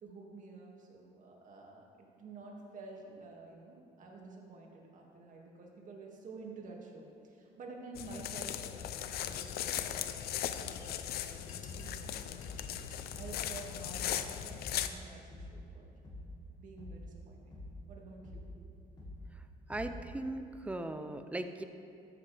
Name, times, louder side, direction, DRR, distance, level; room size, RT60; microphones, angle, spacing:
voice 1, 0.0-10.2 10.6-12.5 13.1-15.9 16.6-17.6 17.9-18.8, right 3 dB, 50° right, -1 dB, 2.1 m, -50 dB
sound 1, 7.9-14.9, left 11 dB, 65° left, 0.6 m, -38 dB
sound 2, 9.4-13.1, left 6 dB, 50° left, 1.2 m, -56 dB
sound 3, 11.7-12.0 12.4-12.8 13.1-13.5 13.9-14.2 14.6-15.0 15.3-15.7 16.0-16.4 16.8-17.2 17.5-17.9 18.2-18.6 19.0-19.3 19.7-20.1, left 2 dB, 25° left, 2.9 m, -47 dB
voice 2, 19.7-21.6, right 2 dB, 10° right, 8 dB, 0.6 m, -38 dB
13.0 x 10.5 x 3.4 m, 2.6 s
cardioid pair, 110°, 17 cm